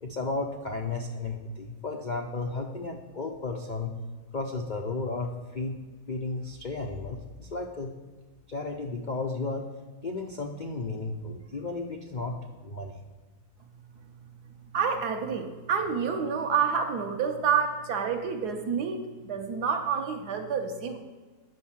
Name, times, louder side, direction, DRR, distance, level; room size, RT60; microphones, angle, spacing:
voice 1, 0.0-3.9 4.3-5.8 6.1-7.9 8.5-9.7 10.0-12.3 12.6-13.0, left 3 dB, 70° left, 2 dB, 0.4 m, -33 dB
voice 2, 14.7-21.0, right 6 dB, 65° right, 5 dB, 1.4 m, -28 dB
9.0 x 5.6 x 7.3 m, 1.3 s
omnidirectional pair, 2.0 m